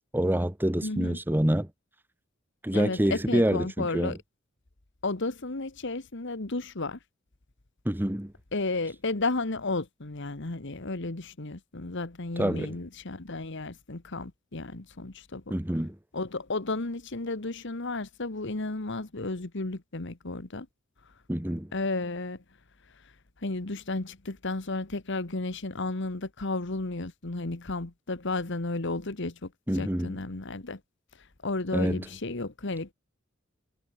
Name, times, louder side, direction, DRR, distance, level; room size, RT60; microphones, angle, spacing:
voice 1, 0.0-1.7 2.6-4.2 7.8-8.3 12.4-12.8 15.5-15.9 21.3-21.7 29.7-30.2 31.7-32.0, right 1 dB, 10° right, 1.1 m, -27 dB
voice 2, 0.8-1.2 2.7-4.2 5.0-7.0 8.5-15.6 16.1-20.7 21.7-22.4 23.4-30.8 31.4-32.9, left 2 dB, 65° left, 1.5 m, -33 dB
head